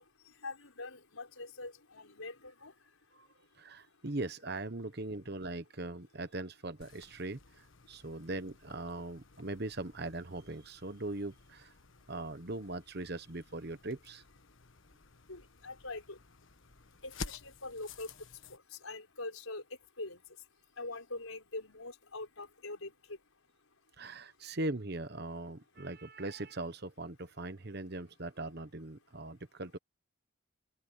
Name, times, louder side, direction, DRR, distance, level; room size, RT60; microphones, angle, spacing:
voice 1, 0.0-4.1 7.8-8.1 11.8-12.1 14.5-23.3 23.7-23.8 24.0-24.6, left 2 dB, 90° left, 5.4 m, -46 dB
voice 2, 3.6-11.7 12.1-14.2 24.0-29.8, right 2 dB, 50° right, 1.2 m, -40 dB
sound 1, 6.8-18.6, left 4 dB, 70° left, 1.4 m, -52 dB
head